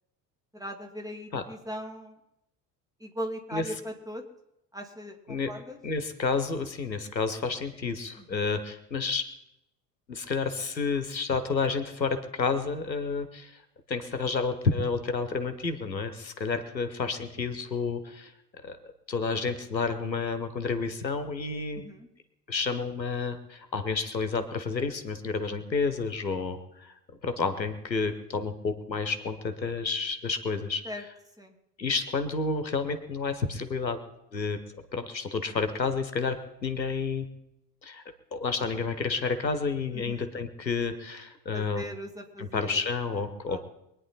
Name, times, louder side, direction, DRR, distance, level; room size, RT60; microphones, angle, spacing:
voice 1, 0.5-2.2 3.0-4.2 4.7-5.8 8.2-8.4 21.7-22.1 30.8-31.0 31.4-31.6 39.9-40.2 41.5-42.8 43.1-43.2 43.5-43.6, equal, 5° right, 3 dB, 2.5 m, -39 dB
voice 2, 5.8-9.3 10.1-13.6 13.9-18.3 18.6-18.8 19.1-21.8 22.5-26.9 27.2-30.9 31.8-34.0 34.3-34.6 34.9-36.4 36.6-37.3 37.8-38.0 38.3-41.8 42.4-43.6, left 4 dB, 90° left, 10 dB, 1.1 m, -30 dB
24.0 x 9.6 x 4.1 m, 0.85 s
figure-of-eight pair, 60°, 50 cm